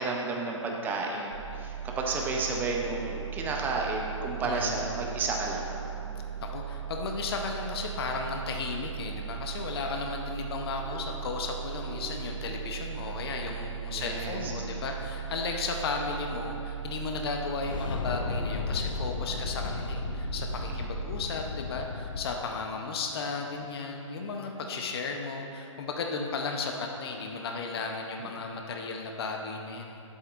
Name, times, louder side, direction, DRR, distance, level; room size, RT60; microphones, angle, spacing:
voice 1, 0.0-5.7 13.9-14.5 20.7-20.9 28.2-28.4, right 3 dB, 10° right, 0 dB, 0.7 m, -32 dB
sound 1, 1.3-21.2, right 8 dB, 80° right, 0.9 m, -38 dB
voice 2, 4.4-4.9 6.4-30.0, left 4 dB, 50° left, 2 dB, 0.8 m, -34 dB
sound 2, 17.6-22.3, left 6 dB, 80° left, 0.5 m, -35 dB
10.5 x 8.1 x 2.5 m, 2.9 s
hypercardioid pair, 145°, 16 cm